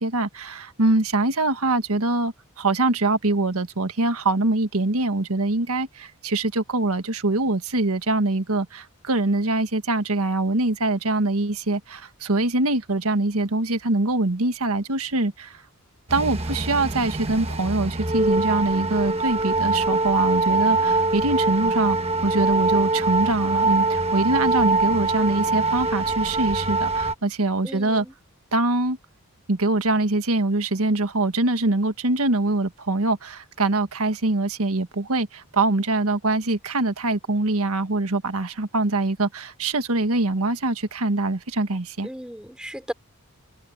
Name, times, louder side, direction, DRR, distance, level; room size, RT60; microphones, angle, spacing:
voice 1, 0.0-15.6 16.1-22.0 22.2-28.0 28.5-29.0 29.5-42.1, right 2 dB, 80° right, 1.6 m, -23 dB
sound 1, 16.1-27.1, right 3 dB, 25° right, 1.4 m, -23 dB
voice 2, 27.6-28.1 42.0-42.9, equal, 5° right, 4.0 m, -35 dB
head